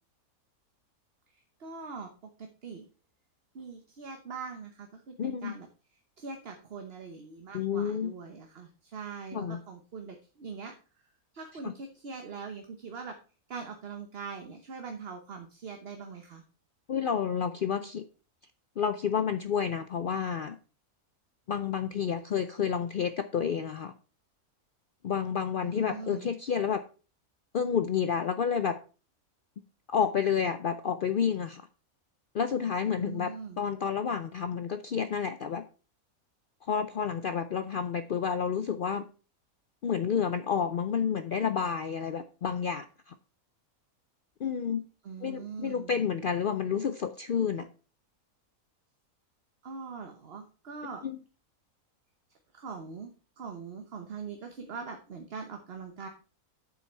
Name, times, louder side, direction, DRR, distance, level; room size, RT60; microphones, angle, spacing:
voice 1, 1.3-2.1 2.4-2.9 3.5-5.7 6.2-10.7 11.3-13.2 13.5-16.4 25.6-26.3 33.0-33.6 45.0-45.9 49.6-51.0 52.5-53.1 53.4-56.1, right 5 dB, 45° right, 5 dB, 1.2 m, -42 dB
voice 2, 5.2-5.5 7.5-8.1 9.3-9.6 11.6-11.7 16.9-18.0 18.8-20.6 21.5-23.9 25.0-26.8 27.5-28.8 29.9-31.6 32.3-35.6 36.7-39.0 39.8-43.1 44.4-44.8 45.2-47.7 51.0-51.2, left 7 dB, 75° left, 10 dB, 0.4 m, -30 dB
8.6 x 7.0 x 4.6 m, 0.36 s
omnidirectional pair, 1.5 m